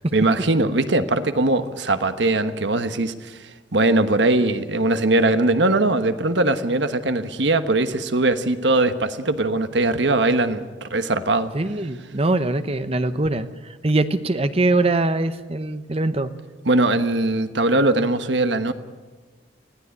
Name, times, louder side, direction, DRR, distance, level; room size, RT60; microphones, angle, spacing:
voice 1, 0.1-3.4 3.7-11.5 16.6-18.7, right 2 dB, 70° right, 10 dB, 1.3 m, -20 dB
voice 2, 11.5-16.3, right 2 dB, 30° right, 11 dB, 0.9 m, -22 dB
20.5 x 15.5 x 9.6 m, 1.4 s
head